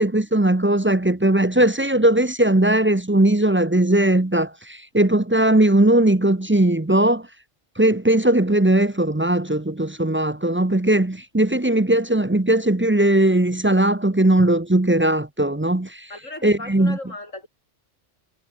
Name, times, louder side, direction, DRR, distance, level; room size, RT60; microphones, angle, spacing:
voice 1, 0.0-7.3 7.8-16.1 16.4-17.0, right 1 dB, 10° right, 0.6 m, -19 dB
voice 2, 16.1-17.5, left 2 dB, 85° left, 6.6 m, -36 dB
omnidirectional pair, 1.3 m